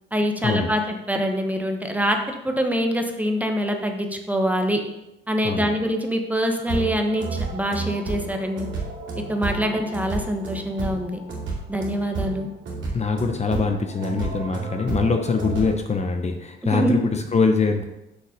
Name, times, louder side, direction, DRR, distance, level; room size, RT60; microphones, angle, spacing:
voice 1, 0.1-4.8 5.3-7.3 7.5-8.7 9.3-11.2 11.7-12.5 16.6-17.0, equal, 10° right, 4 dB, 1.1 m, -24 dB
sound 1, 6.6-15.7, right 4 dB, 75° right, 2.6 m, -31 dB
voice 2, 12.9-17.8, left 4 dB, 35° left, 5 dB, 0.8 m, -23 dB
6.5 x 5.6 x 5.1 m, 0.92 s
cardioid pair, 90°, 20 cm